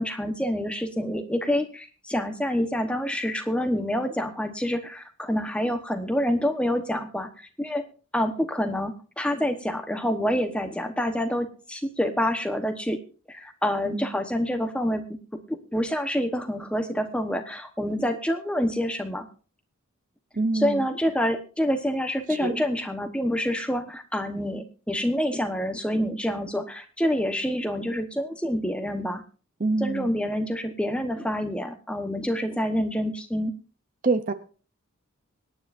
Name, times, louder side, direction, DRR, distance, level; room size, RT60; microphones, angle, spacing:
voice 1, 0.0-7.8 8.1-13.0 13.3-15.0 15.5-19.3 20.5-29.2 29.8-33.5, equal, 5° left, 6 dB, 1.1 m, -27 dB
voice 2, 20.3-20.9 22.4-22.6 29.6-30.1 34.0-34.3, right 3 dB, 35° right, 11 dB, 0.7 m, -26 dB
24.5 x 9.7 x 2.6 m, 0.38 s
head